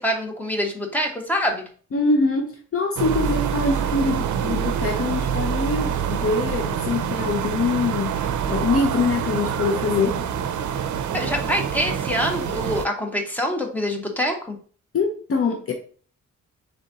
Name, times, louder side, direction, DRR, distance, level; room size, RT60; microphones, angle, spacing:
voice 1, 0.0-1.6 11.1-14.6, equal, 5° left, 0.9 m, -25 dB
voice 2, 1.9-10.2 14.9-15.7, left 3 dB, 50° left, 0.6 m, -24 dB
sound 1, 3.0-12.9, right 8 dB, 75° right, 0.5 m, -26 dB
3.9 x 3.5 x 3.9 m
wide cardioid pair, 145°, 30 cm